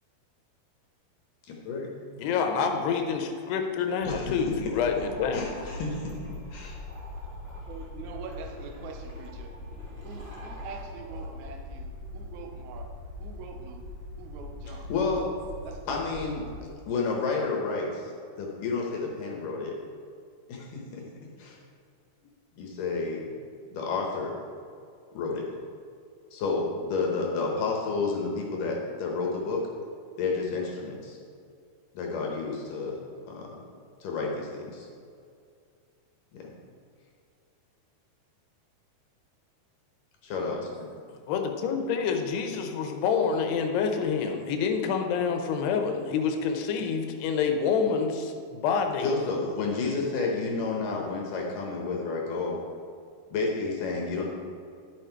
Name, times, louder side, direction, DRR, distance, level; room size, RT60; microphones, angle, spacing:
voice 1, 2.2-5.5 41.1-49.1, left 6 dB, 85° left, 5 dB, 2.9 m, -27 dB
sound 1, 4.0-16.6, left 2 dB, 55° right, 1.7 m, -42 dB
sound 2, 4.8-11.3, right 1 dB, 30° right, 1.8 m, -49 dB
voice 2, 5.3-6.1 6.5-6.8 14.7-15.3 15.9-16.5 16.9-18.1 18.4-19.8 20.5-21.0 21.4-21.6 22.6-23.4 23.7-24.4 25.1-25.5 26.3-29.6 30.2-31.2 31.9-33.0 33.2-33.6 34.0-34.9 36.3-36.5 40.2-40.9 49.0-52.6 53.3-54.3, left 4 dB, 65° left, -1 dB, 2.3 m, -30 dB
voice 3, 7.7-9.5 10.0-12.9 13.2-13.9 14.2-14.9 15.6-16.2, right 5 dB, 85° right, 4 dB, 1.7 m, -44 dB
11.0 x 6.4 x 4.5 m, 2.3 s
omnidirectional pair, 4.6 m